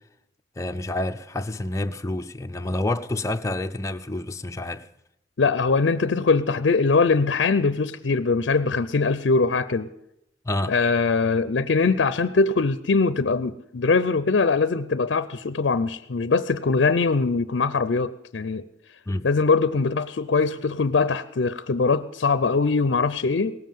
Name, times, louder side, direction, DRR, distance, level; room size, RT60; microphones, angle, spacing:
voice 1, 0.6-4.9 10.4-10.7 19.1-19.3, left 1 dB, 15° left, 0.5 m, -28 dB
voice 2, 5.4-9.9 10.7-18.7 19.2-23.6, left 4 dB, 65° left, 0.5 m, -22 dB
18.0 x 7.5 x 9.1 m
head